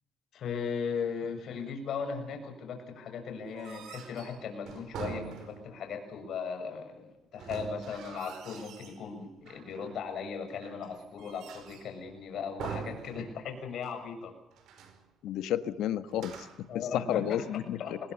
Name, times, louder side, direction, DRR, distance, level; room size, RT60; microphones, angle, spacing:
voice 1, 0.3-14.3 16.7-17.4 17.8-17.9, left 6 dB, 60° left, 5 dB, 6.8 m, -37 dB
sound 1, 3.4-5.9 7.3-9.0 9.5-10.1 10.6-12.0 12.6-13.7 13.9-14.0 14.5-15.0 16.1-16.7, right 6 dB, 75° right, 4.8 m, -44 dB
voice 2, 15.2-18.0, left 11 dB, 85° left, 12 dB, 1.4 m, -32 dB
25.5 x 19.5 x 7.1 m, 0.75 s
cardioid pair, 125°, 0 cm